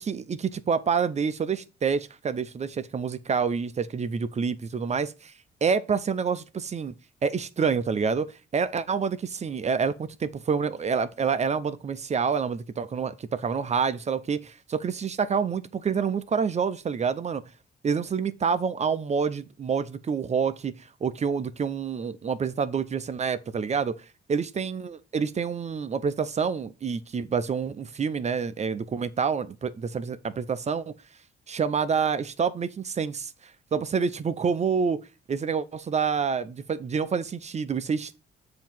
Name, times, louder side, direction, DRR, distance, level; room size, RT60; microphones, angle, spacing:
voice 1, 0.0-5.3 5.6-6.9 7.2-17.4 17.8-24.0 24.3-30.9 31.5-33.3 33.7-35.0 35.3-38.2, right 6 dB, 35° right, 0.5 m, -27 dB
7.1 x 2.9 x 5.9 m
cardioid pair, 90°, 20 cm